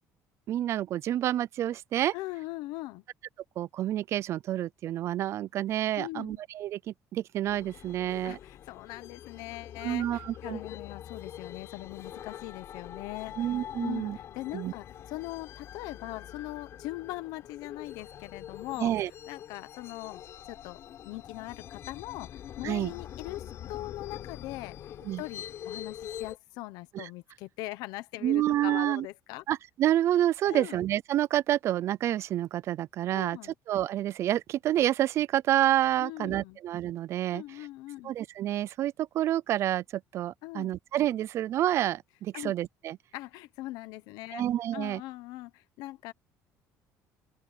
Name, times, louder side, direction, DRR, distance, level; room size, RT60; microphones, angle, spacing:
voice 1, 0.5-2.1 3.6-8.4 9.8-10.6 13.4-14.2 14.5-14.7 18.8-19.1 22.6-22.9 25.1-25.2 26.9-27.1 28.2-29.1 29.5-33.4 33.7-37.4 38.0-43.0 44.3-45.0, right 12 dB, 45° right, 0.4 m, -28 dB
voice 2, 2.1-3.0 6.0-6.4 8.2-18.9 19.2-24.8 25.2-29.4 30.4-30.8 33.1-33.5 36.0-36.6 37.3-38.1 40.4-40.7 42.3-42.5 43.1-44.4 44.7-46.1, left 18 dB, 80° left, 1.0 m, -41 dB
sound 1, 7.5-26.4, left 10 dB, 45° left, 4.3 m, -44 dB
open air
cardioid pair, 160°, 6 cm